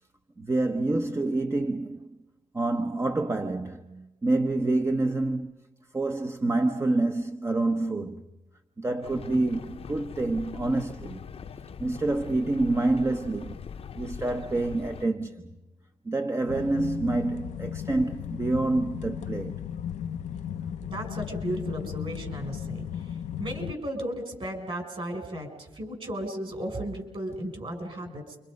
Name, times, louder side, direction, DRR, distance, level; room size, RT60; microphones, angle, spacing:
voice 1, 0.4-2.2 2.5-5.5 5.9-8.3 8.8-11.3 11.8-13.6 14.0-15.6 16.0-19.6, right 2 dB, 20° right, 1.0 m, -27 dB
sound 1, 9.0-15.1, left 7 dB, 55° left, 0.9 m, -41 dB
sound 2, 16.5-23.7, left 9 dB, 80° left, 0.7 m, -35 dB
voice 2, 20.8-28.4, right 1 dB, 45° right, 6.4 m, -35 dB
29.0 x 25.0 x 5.3 m
cardioid pair, 80°, 12 cm